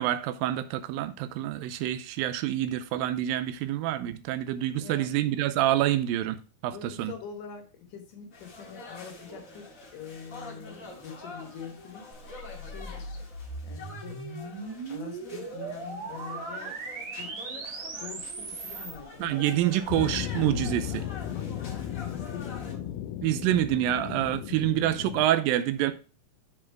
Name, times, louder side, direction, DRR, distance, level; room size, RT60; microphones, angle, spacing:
voice 1, 0.0-7.1 19.2-21.0 23.2-25.9, right 13 dB, 80° right, 2.3 m, -27 dB
voice 2, 4.7-5.1 6.7-12.1 12.6-13.2 13.6-14.2 14.9-16.7 17.2-17.4 17.9-20.0 21.3-23.0, left 7 dB, 65° left, 2.5 m, -44 dB
sound 1, 8.3-22.7, left 2 dB, 40° left, 1.3 m, -46 dB
sound 2, 12.1-19.0, right 3 dB, 55° right, 2.4 m, -39 dB
sound 3, 19.9-25.3, left 10 dB, 85° left, 2.6 m, -35 dB
7.4 x 4.9 x 4.5 m
omnidirectional pair, 4.3 m